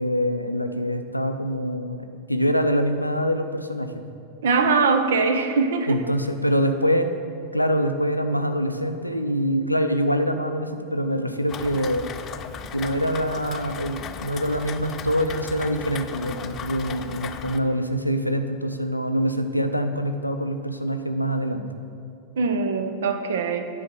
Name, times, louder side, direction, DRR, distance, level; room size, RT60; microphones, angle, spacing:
voice 1, 0.0-3.9 5.9-7.1 7.5-12.0 12.7-21.6, equal, 90° left, 7 dB, 0.5 m, -25 dB
voice 2, 4.4-6.0 22.4-23.8, right 4 dB, 60° right, 8 dB, 0.6 m, -22 dB
Rain, 11.5-17.6, left 7 dB, 30° left, 0.4 m, -36 dB
9.7 x 4.2 x 6.4 m, 2.5 s
figure-of-eight pair, 90°, 0 cm